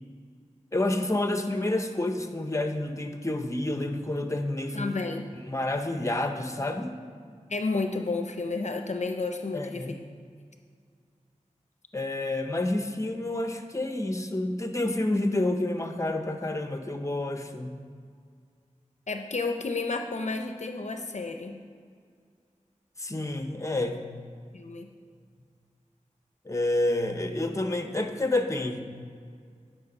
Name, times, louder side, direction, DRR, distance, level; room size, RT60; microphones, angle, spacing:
voice 1, 0.7-4.9 5.4-6.9 9.5-10.0 11.9-17.7 23.0-24.0 26.4-28.8, left 1 dB, 25° left, 6 dB, 0.8 m, -29 dB
voice 2, 4.7-5.3 7.5-10.0 19.1-21.6 24.5-24.9, left 3 dB, 65° left, 5 dB, 0.6 m, -31 dB
9.6 x 5.9 x 5.3 m, 2.1 s
wide cardioid pair, 50°, 13 cm